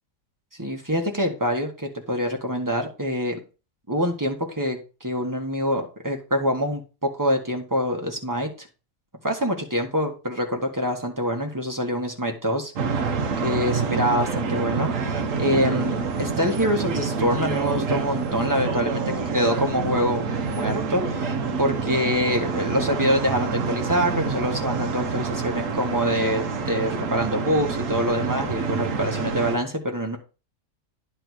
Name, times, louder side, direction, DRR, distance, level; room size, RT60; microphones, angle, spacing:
voice 1, 0.6-3.4 3.9-8.7 9.2-13.1 13.4-30.2, equal, 15° right, 2 dB, 1.4 m, -25 dB
sound 1, 12.8-29.6, right 5 dB, 60° right, 1.1 m, -27 dB
10.5 x 3.5 x 6.3 m, 0.32 s
omnidirectional pair, 1.7 m